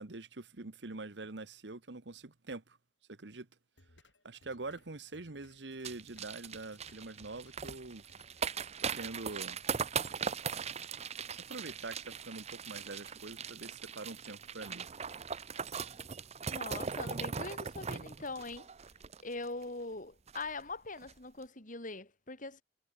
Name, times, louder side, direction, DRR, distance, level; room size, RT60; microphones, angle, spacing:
voice 1, 0.0-2.8 3.1-3.5 4.2-8.0 8.8-9.6 11.5-14.9, right 3 dB, 70° right, 1.3 m, -45 dB
sound 1, 3.8-9.4, left 2 dB, 90° left, 7.7 m, -65 dB
sound 2, 5.8-19.6 19.9-20.0 20.3-20.6 21.0-21.1, right 6 dB, 35° right, 0.8 m, -40 dB
voice 2, 16.5-18.7 19.2-22.6, left 3 dB, 45° left, 4.7 m, -42 dB
head